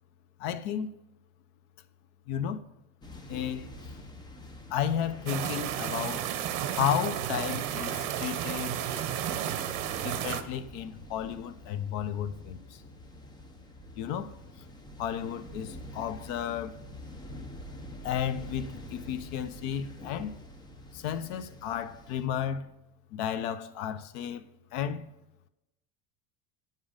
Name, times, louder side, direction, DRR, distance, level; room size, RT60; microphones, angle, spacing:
voice 1, 0.4-0.9 2.3-2.6 3.3-3.7 4.7-6.3 6.7-8.7 10.0-12.8 14.0-14.3 15.0-16.8 18.0-20.3 20.9-22.7 23.1-24.4 24.7-25.1, left 9 dB, 60° left, 0.9 m, -33 dB
sound 1, 3.0-22.3, left 1 dB, 10° left, 0.7 m, -47 dB
sound 2, 5.3-10.4, right 10 dB, 60° right, 1.1 m, -32 dB
9.4 x 7.5 x 5.1 m
cardioid pair, 170°, 38 cm